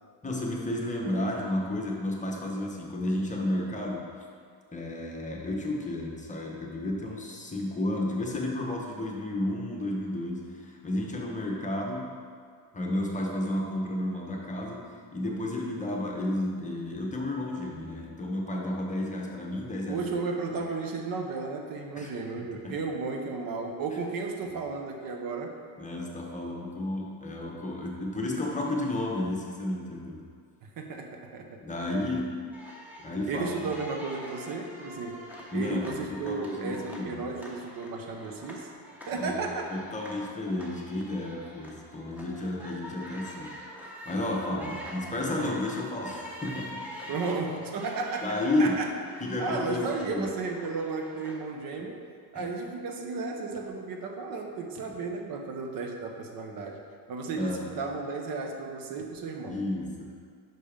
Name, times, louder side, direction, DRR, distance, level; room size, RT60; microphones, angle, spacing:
voice 1, 0.2-4.1 4.7-12.1 12.7-20.0 22.0-22.1 22.6-22.8 25.8-30.2 31.6-32.5 33.0-33.6 35.5-37.2 39.1-39.4 39.7-47.1 48.2-48.8 49.2-50.3 51.8-51.9 52.3-52.5 57.4-57.7 59.5-60.1, left 1 dB, 20° left, -1 dB, 0.9 m, -32 dB
voice 2, 19.9-25.5 30.6-31.6 33.3-35.2 35.5-38.7 39.1-39.7 45.4-45.5 47.1-48.9 49.4-52.0 52.3-56.8 57.1-59.6, right 4 dB, 65° right, 3 dB, 0.8 m, -34 dB
sound 1, 32.5-51.6, equal, 5° right, 1.0 m, -45 dB
5.8 x 5.4 x 5.0 m, 2.1 s
cardioid pair, 140°, 37 cm